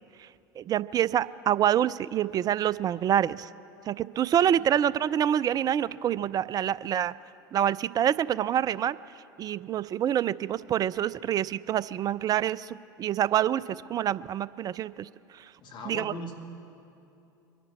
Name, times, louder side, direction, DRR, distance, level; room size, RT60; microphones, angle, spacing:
voice 1, 0.6-3.5 3.9-7.1 7.5-9.0 9.4-15.5 15.9-16.1, right 10 dB, 35° right, 19 dB, 0.4 m, -27 dB
voice 2, 15.6-16.3, left 2 dB, 45° left, 2 dB, 2.1 m, -39 dB
24.5 x 11.0 x 4.3 m, 2.7 s
hypercardioid pair, 75°, 11 cm